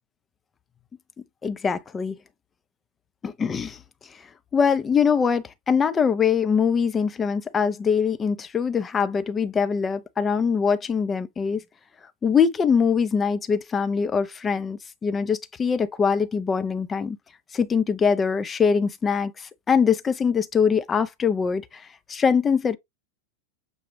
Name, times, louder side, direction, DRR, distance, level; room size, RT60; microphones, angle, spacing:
voice 1, 1.4-2.2 3.2-3.8 4.5-11.6 12.2-17.2 17.5-22.8, left 6 dB, 20° left, 0.5 m, -23 dB
6.6 x 2.3 x 3.1 m
figure-of-eight pair, 90°, 0 cm